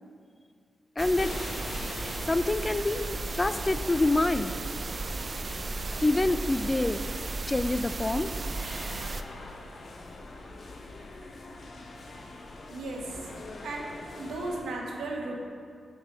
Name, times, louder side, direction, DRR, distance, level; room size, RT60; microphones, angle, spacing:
voice 1, 1.0-1.3 2.3-4.6 6.0-7.0 7.5-8.3, left 2 dB, 25° left, 12 dB, 0.4 m, -26 dB
sound 1, 1.0-9.2, right 3 dB, 50° right, 0.4 m, -35 dB
sound 2, 1.1-14.6, left 2 dB, 60° left, 0.9 m, -43 dB
voice 2, 12.7-13.3 13.6-15.4, right 2 dB, 80° right, -1 dB, 1.1 m, -35 dB
6.2 x 5.9 x 5.5 m, 2.2 s
supercardioid pair, 50°, 0 cm